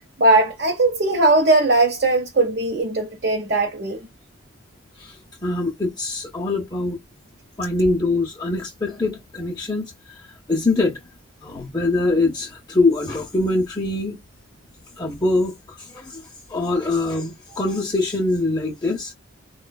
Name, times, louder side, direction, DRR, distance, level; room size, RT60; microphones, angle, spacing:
voice 1, 0.2-4.1 17.5-17.6, right 2 dB, 50° right, 0.7 m, -19 dB
voice 2, 5.0-7.0 7.6-11.0 11.4-14.2 15.0-19.1, left 2 dB, 20° left, 0.6 m, -23 dB
4.2 x 2.2 x 2.2 m
head